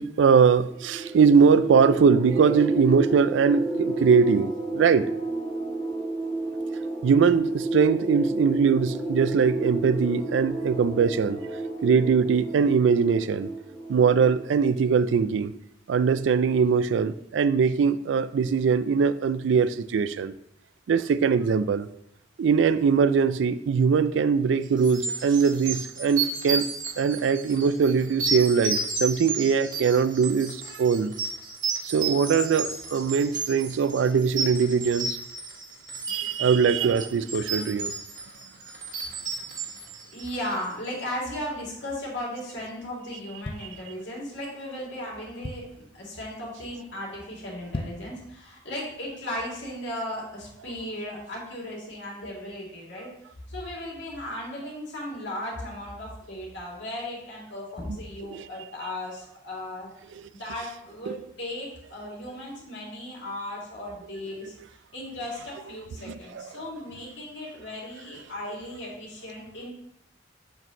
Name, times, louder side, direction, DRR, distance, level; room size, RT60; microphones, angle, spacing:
voice 1, 0.0-5.1 7.0-11.5 11.8-13.5 13.9-15.5 15.9-20.3 20.9-21.9 22.4-31.1 31.8-35.2 36.1-37.9 57.9-58.0 58.3-58.4 58.8-58.9 60.6-60.7 61.1-61.2 64.2-64.3 65.4-65.5 66.0-66.7, right 6 dB, 75° right, 0.3 m, -22 dB
sound 1, 0.7-15.0, right 2 dB, 10° right, 1.5 m, -32 dB
sound 2, 24.8-40.7, right 4 dB, 45° right, 1.1 m, -32 dB
voice 2, 40.1-53.1 53.5-59.9 60.3-64.5 64.9-69.7, left 1 dB, 70° left, 2.4 m, -36 dB
sound 3, 43.4-44.4 44.9-45.0 45.2-45.9 46.4-46.6 46.9-47.0 47.5-48.2 48.6-48.7, left 2 dB, 30° left, 0.4 m, -37 dB
6.7 x 6.3 x 2.9 m
head